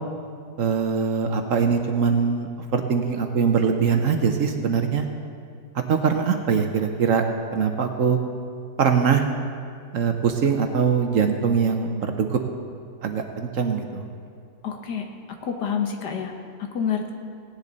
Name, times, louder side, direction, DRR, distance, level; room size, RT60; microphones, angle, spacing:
voice 1, 0.6-5.1 5.9-7.2 7.5-8.2 8.8-9.3 9.9-12.4 13.0-14.1, right 6 dB, 60° right, 5 dB, 1.0 m, -22 dB
voice 2, 14.6-15.1 15.4-16.3 16.6-17.1, left 7 dB, 75° left, 4 dB, 1.7 m, -27 dB
17.5 x 10.0 x 4.0 m, 2.3 s
omnidirectional pair, 1.8 m